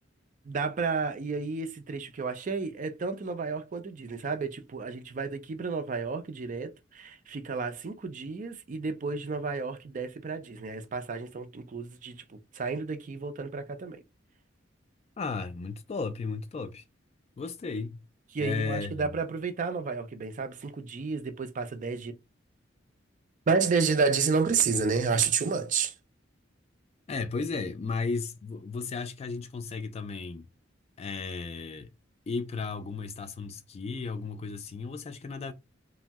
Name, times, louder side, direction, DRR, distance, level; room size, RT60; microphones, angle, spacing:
voice 1, 0.4-14.0 18.3-22.1 23.5-25.9, right 5 dB, 40° right, 0.4 m, -31 dB
voice 2, 15.2-16.8 17.4-18.0 18.4-19.1 27.1-30.5 31.0-31.9 32.3-35.5, left 4 dB, 35° left, 0.3 m, -34 dB
2.6 x 2.0 x 3.4 m
head